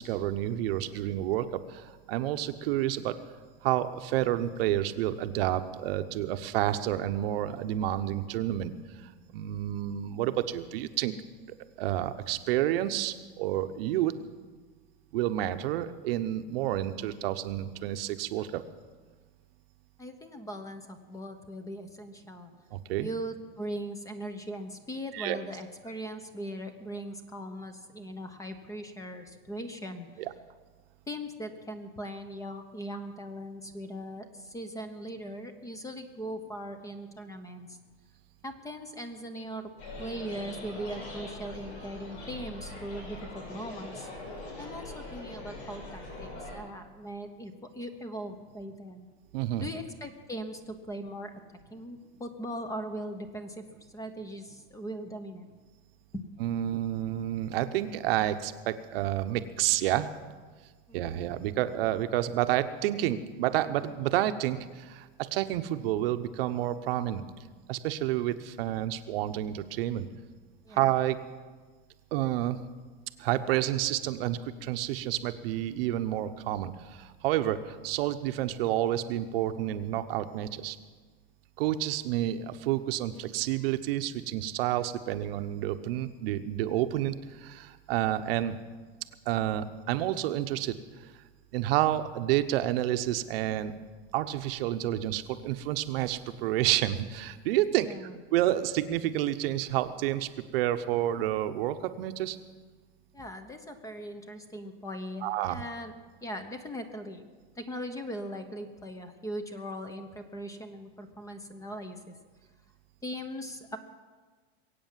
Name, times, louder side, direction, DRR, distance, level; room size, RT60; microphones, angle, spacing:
voice 1, 0.0-3.2 3.6-8.7 9.3-11.1 11.8-14.1 15.1-18.6 22.7-23.1 25.1-25.4 30.2-30.3 49.3-49.7 56.4-60.1 60.9-67.3 67.7-70.1 70.7-71.2 72.1-72.6 73.2-80.8 81.6-88.6 89.3-91.1 91.5-93.7 94.1-97.9 98.3-102.4 105.2-105.6, right 13 dB, 60° right, 10 dB, 0.9 m, -29 dB
voice 2, 20.0-22.5 23.0-30.3 31.1-37.8 38.4-39.7 40.0-49.1 49.6-51.4 51.7-55.5 56.1-56.3 60.9-61.2 70.7-70.8 97.8-98.2 103.1-105.9 106.2-107.3 107.6-112.2 113.0-113.8, equal, 10° left, 8 dB, 0.8 m, -40 dB
sound 1, 39.8-46.6, left 2 dB, 75° left, 6.1 m, -42 dB
22.0 x 8.7 x 7.4 m, 1.4 s
supercardioid pair, 155°, 32 cm